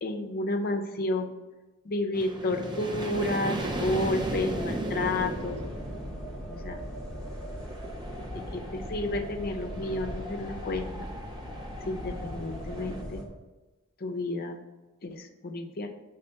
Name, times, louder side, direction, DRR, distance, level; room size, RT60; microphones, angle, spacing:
voice 1, 0.0-1.3 1.8-5.6 6.5-6.8 8.3-11.1 11.8-13.2 14.0-14.6 15.0-15.9, left 2 dB, 45° left, 5 dB, 0.6 m, -31 dB
sound 1, 2.1-13.0, right 2 dB, 20° right, 0.6 m, -37 dB
sound 2, 3.6-13.2, equal, 5° left, 1.0 m, -39 dB
5.5 x 3.7 x 5.5 m, 1.1 s
head